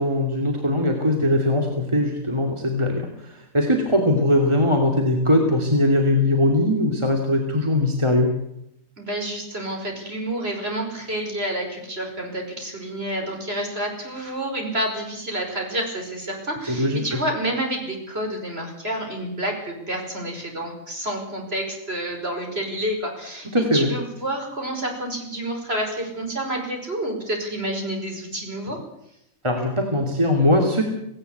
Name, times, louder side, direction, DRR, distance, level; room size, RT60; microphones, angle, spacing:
voice 1, 0.0-8.3 16.7-17.2 23.5-23.9 29.4-30.8, left 1 dB, 20° right, 2 dB, 2.8 m, -20 dB
voice 2, 9.0-28.8, right 1 dB, 45° right, 2 dB, 5.8 m, -29 dB
18.0 x 18.0 x 8.2 m, 0.79 s
omnidirectional pair, 1.5 m